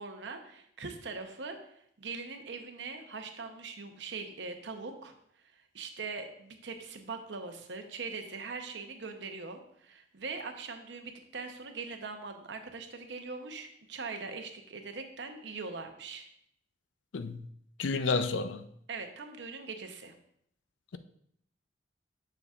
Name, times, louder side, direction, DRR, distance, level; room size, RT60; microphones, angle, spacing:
voice 1, 0.0-1.6 2.0-5.1 5.5-16.3 18.9-20.1, right 4 dB, 70° right, 0.8 m, -41 dB
voice 2, 17.8-18.6, left 4 dB, 90° left, 0.5 m, -30 dB
6.9 x 6.9 x 2.4 m
head